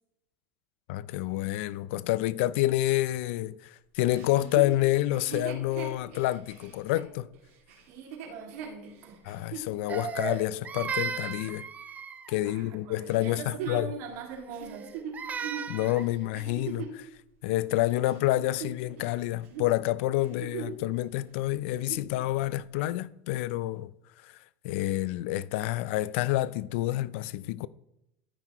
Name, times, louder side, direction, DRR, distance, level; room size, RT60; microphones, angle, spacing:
voice 1, 0.9-7.3 9.2-11.7 12.3-13.9 15.7-17.1 17.4-23.9 24.2-24.3 24.6-27.7, left 16 dB, 70° left, 0.4 m, -28 dB
Chuckle chortle, 4.1-9.7 10.3-10.4 13.1-17.0 17.6-19.1 19.4-19.7 20.1-20.9 21.2-21.3 21.6-22.1 22.8-22.9, right 7 dB, 75° right, 2.3 m, -40 dB
voice 2, 7.9-9.2 12.4-14.9, right 6 dB, 50° right, 2.1 m, -42 dB
Crying sobbing, 9.9-12.4 14.6-16.1, right 6 dB, 25° right, 0.6 m, -35 dB
13.5 x 5.8 x 2.9 m
supercardioid pair, 130°, 7 cm